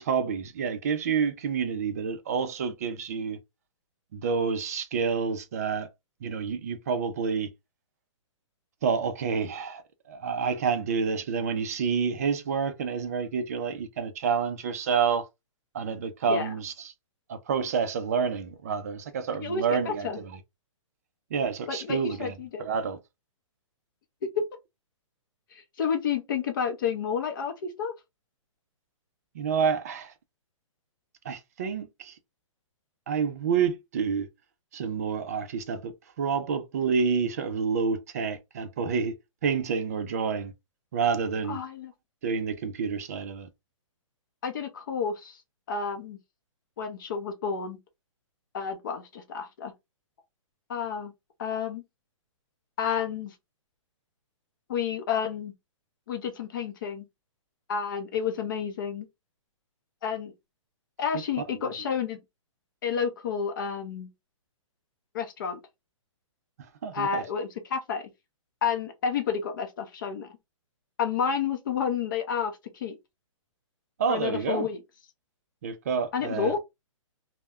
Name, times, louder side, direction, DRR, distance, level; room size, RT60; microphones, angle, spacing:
voice 1, 0.0-3.4 4.1-5.9 6.2-7.5 8.8-9.8 10.1-15.3 15.7-16.9 17.3-20.1 21.3-22.3 22.6-23.0 29.3-30.1 31.2-32.1 33.1-34.3 34.7-39.2 39.4-40.5 40.9-41.6 42.2-43.5 66.8-67.2 74.0-74.7 75.6-76.6, right 6 dB, 30° right, 0.3 m, -28 dB
voice 2, 19.3-20.2 21.7-22.7 24.2-24.5 25.5-27.9 41.5-41.9 44.4-45.4 45.7-46.2 46.8-47.8 48.5-49.7 50.7-51.1 51.4-51.8 52.8-53.3 54.7-55.5 56.1-57.0 57.7-59.1 60.0-60.3 61.0-62.2 62.8-64.1 65.1-65.6 66.9-68.1 68.6-70.3 71.0-73.0 74.1-74.8 76.1-76.6, left 6 dB, 40° left, 0.6 m, -30 dB
2.1 x 2.1 x 3.4 m
hypercardioid pair, 170°, 17 cm